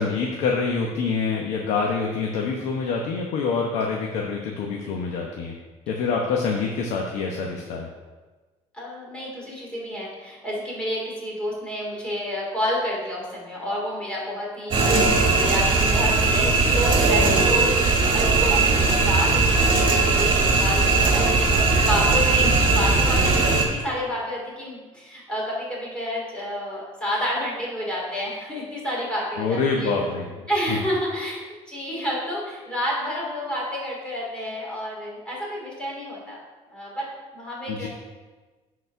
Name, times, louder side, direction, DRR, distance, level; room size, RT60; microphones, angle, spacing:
voice 1, 0.0-5.5 5.9-7.9 14.9-15.1 22.4-22.7 29.4-30.3 30.7-30.8 37.7-37.9, left 4 dB, 80° left, 0 dB, 1.0 m, -26 dB
voice 2, 8.7-29.9 30.5-31.4 31.7-36.4 36.7-37.1 37.3-37.9, equal, 10° left, -4 dB, 2.9 m, -30 dB
sound 1, 14.7-23.6, right 3 dB, 45° right, 1.9 m, -19 dB
9.4 x 4.3 x 5.6 m, 1.3 s
cardioid pair, 135°, 12 cm